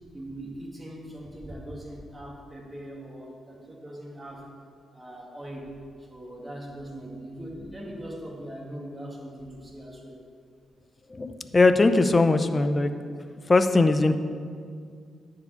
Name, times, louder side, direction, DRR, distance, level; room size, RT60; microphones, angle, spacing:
voice 1, 0.1-4.5 4.9-5.7 6.0-10.2, right 1 dB, 15° right, -3 dB, 2.5 m, -40 dB
voice 2, 11.1-12.9 13.5-14.2, left 3 dB, 30° left, 9 dB, 0.7 m, -20 dB
11.0 x 4.9 x 8.2 m, 2.1 s
cardioid pair, 85°, 0 cm